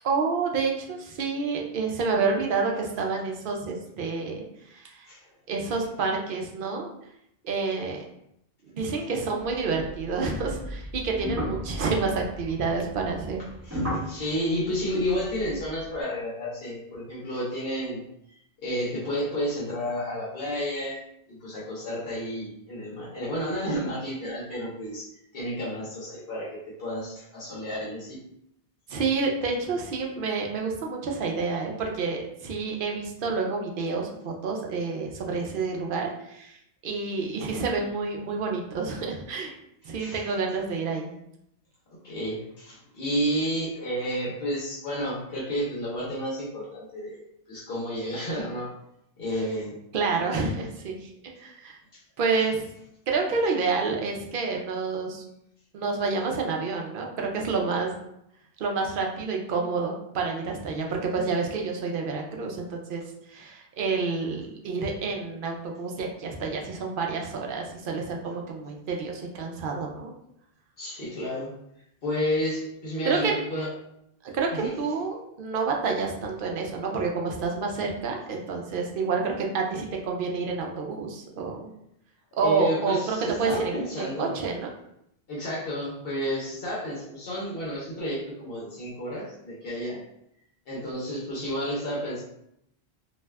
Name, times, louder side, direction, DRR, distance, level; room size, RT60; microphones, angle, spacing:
voice 1, 0.0-4.4 4.7-5.1 5.5-6.9 7.4-8.0 8.6-13.4 28.9-36.6 36.8-39.5 39.8-41.1 49.9-51.1 51.4-51.8 52.2-52.7 53.1-55.2 55.7-57.9 58.6-63.0 63.3-70.1 73.1-73.3 74.3-81.7 82.4-84.7, right 4 dB, 65° right, 1 dB, 0.7 m, -28 dB
sound 1, 9.4-16.0, equal, 15° right, 0.8 m, -36 dB
voice 2, 13.6-18.0 18.6-21.0 21.3-25.1 25.3-28.2 40.0-40.2 42.0-47.2 47.5-48.7 49.2-49.8 70.8-71.5 72.0-73.7 74.5-74.8 82.4-84.4 85.3-90.0 90.7-92.2, equal, 65° left, -6 dB, 1.0 m, -31 dB
2.6 x 2.3 x 3.2 m, 0.77 s
omnidirectional pair, 1.0 m